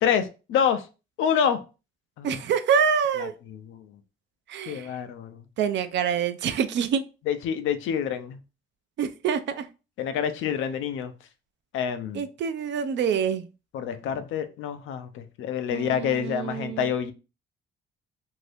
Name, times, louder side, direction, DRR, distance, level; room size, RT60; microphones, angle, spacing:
voice 1, 0.0-0.9 1.2-1.6 2.2-2.4 3.2-3.9 4.7-5.4 7.3-8.4 10.0-11.1 11.7-12.2 13.7-17.1, left 8 dB, 85° left, 9 dB, 0.5 m, -27 dB
voice 2, 2.2-3.3 4.5-4.9 5.6-7.0 9.0-9.7 12.1-13.5 15.7-16.9, right 7 dB, 65° right, 10 dB, 0.5 m, -26 dB
2.7 x 2.6 x 3.3 m, 0.31 s
cardioid pair, 90°, 20 cm